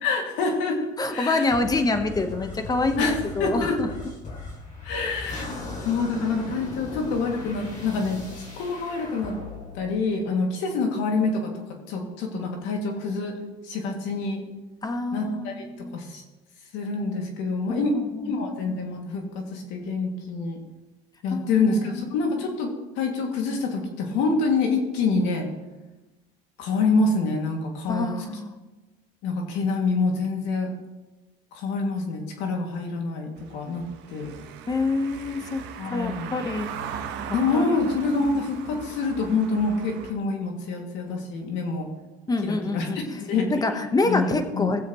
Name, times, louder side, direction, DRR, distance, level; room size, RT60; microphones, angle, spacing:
voice 1, 0.0-1.5 3.0-4.0 4.8-9.4 9.7-13.4 13.6-14.4 15.1-16.2 16.7-18.0 18.2-20.6 21.2-25.5 26.6-28.1 29.2-30.7 31.5-34.3 35.8-36.4 37.3-41.9 42.4-43.5 44.0-44.7, left 3 dB, 75° left, 2 dB, 2.5 m, -26 dB
voice 2, 1.0-3.1 3.4-3.9 14.8-16.0 17.7-18.3 21.3-21.9 27.9-28.6 34.7-36.7 37.5-37.8 38.2-38.3 42.3-44.8, left 3 dB, 20° left, 7 dB, 1.2 m, -27 dB
sound 1, 1.5-10.8, left 2 dB, 40° left, 3.1 m, -38 dB
Car passing by / Engine, 33.4-40.1, right 7 dB, 65° right, 1.3 m, -39 dB
18.5 x 7.7 x 3.1 m, 1.1 s
supercardioid pair, 105°, 19 cm